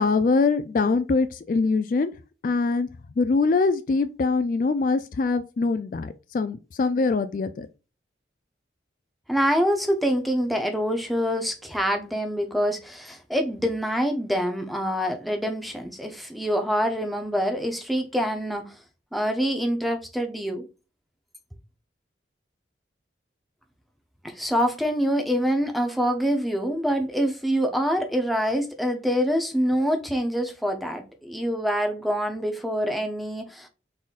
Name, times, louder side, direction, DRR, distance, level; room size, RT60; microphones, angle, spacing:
voice 1, 0.0-2.1 2.4-2.9 3.2-7.7, left 4 dB, 45° left, 0.3 m, -23 dB
voice 2, 9.3-18.8 19.1-20.6 24.2-33.7, equal, ahead, 0.6 m, -25 dB
4.1 x 3.7 x 2.4 m
head